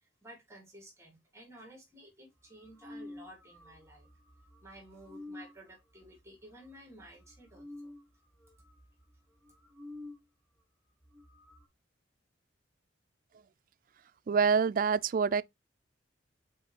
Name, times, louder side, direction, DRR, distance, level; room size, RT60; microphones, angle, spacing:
voice 1, 0.0-4.1 4.6-7.9, right 1 dB, 15° right, 1.6 m, -53 dB
sound 1, 2.4-10.3 10.6-10.7 10.9-11.7, left 2 dB, 5° left, 1.6 m, -51 dB
voice 2, 14.3-15.4, right 6 dB, 45° right, 0.3 m, -26 dB
8.5 x 4.2 x 2.9 m
head